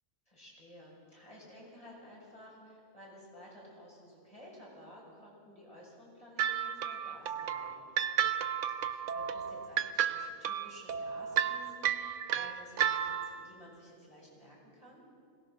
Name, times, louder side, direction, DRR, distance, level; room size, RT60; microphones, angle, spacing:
voice 1, 0.3-7.9 8.8-15.0, equal, 30° left, -5 dB, 7.4 m, -54 dB
sound 1, 6.4-13.5, right 9 dB, 80° right, 1.1 m, -33 dB
21.5 x 19.0 x 6.5 m, 2.5 s
omnidirectional pair, 1.3 m